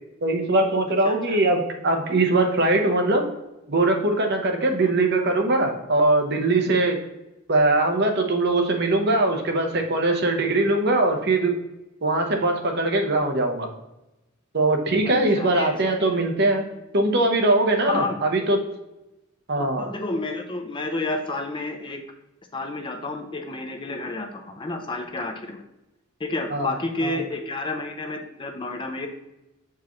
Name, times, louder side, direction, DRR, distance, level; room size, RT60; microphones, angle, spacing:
voice 1, 0.2-3.2 3.7-7.0 7.5-11.5 12.0-13.7 14.5-16.6 16.9-18.6 19.5-19.9 26.5-26.8 27.0-27.2, right 2 dB, 50° right, 3 dB, 0.9 m, -21 dB
voice 2, 1.0-1.4 4.6-4.9 15.0-16.2 17.9-18.2 19.6-22.0 22.5-25.6 26.2-29.1, left 2 dB, 25° left, 4 dB, 0.5 m, -31 dB
7.0 x 4.7 x 3.0 m, 0.95 s
head